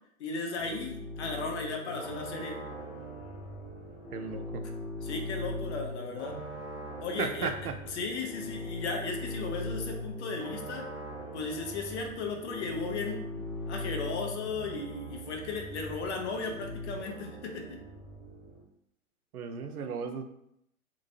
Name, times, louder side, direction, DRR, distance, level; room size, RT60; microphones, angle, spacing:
voice 1, 0.2-2.6 5.0-6.3 7.0-7.5 7.9-10.8 11.3-13.2 13.7-17.8, left 4 dB, 50° left, 2 dB, 0.8 m, -36 dB
sound 1, 0.6-18.6, left 1 dB, 15° left, 1.0 m, -40 dB
voice 2, 4.1-4.6 7.2-7.8 19.3-20.2, right 6 dB, 90° right, 7 dB, 0.6 m, -35 dB
2.9 x 2.8 x 2.6 m, 0.75 s
hypercardioid pair, 115°, 43 cm